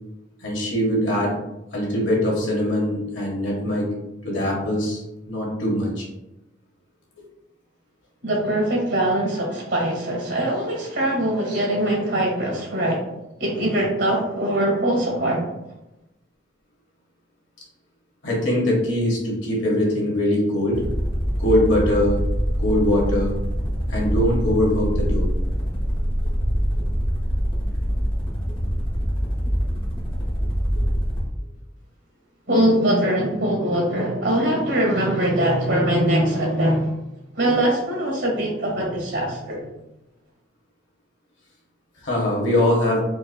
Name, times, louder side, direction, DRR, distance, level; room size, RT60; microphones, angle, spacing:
voice 1, 0.4-1.3 1.7-3.9 4.2-5.0 5.3-6.0 18.2-20.8 21.4-22.2 22.6-23.4 23.9-25.3 42.0-43.0, left 1 dB, 80° left, -3 dB, 1.3 m, -22 dB
voice 2, 8.2-13.0 13.4-15.4 32.5-37.0 37.3-39.6, right 1 dB, 80° right, -1 dB, 1.4 m, -22 dB
sound 1, 20.6-31.3, equal, 30° left, 0.6 m, -24 dB
4.5 x 2.5 x 2.2 m, 0.91 s
head